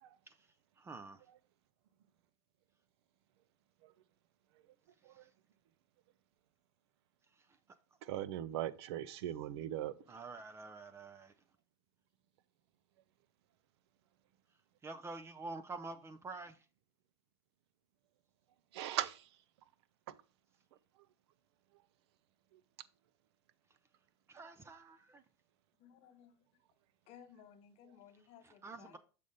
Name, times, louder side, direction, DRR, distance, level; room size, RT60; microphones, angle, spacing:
voice 1, 0.3-1.3 5.0-5.3 7.3-7.6 10.1-11.4 14.5-16.7 24.3-25.2 28.4-29.0, right 3 dB, 20° right, 0.5 m, -49 dB
voice 2, 8.0-9.9 18.7-19.3 20.1-20.2 22.5-22.6, right 12 dB, 70° right, 0.6 m, -39 dB
voice 3, 25.8-26.4 27.1-29.0, left 9 dB, 50° left, 1.5 m, -59 dB
6.7 x 4.0 x 5.0 m
supercardioid pair, 115°, 14 cm